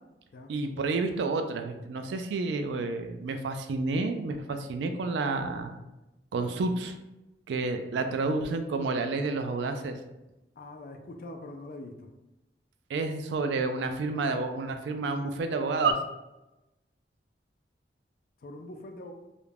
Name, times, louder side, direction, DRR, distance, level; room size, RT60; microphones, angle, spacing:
voice 1, 0.5-5.8 6.3-6.9 7.5-10.0 12.9-16.0, right 3 dB, 80° right, 7 dB, 0.3 m, -30 dB
voice 2, 10.6-12.1 18.4-19.1, left 2 dB, 55° left, 4 dB, 0.4 m, -43 dB
2.4 x 2.1 x 3.2 m, 0.98 s
head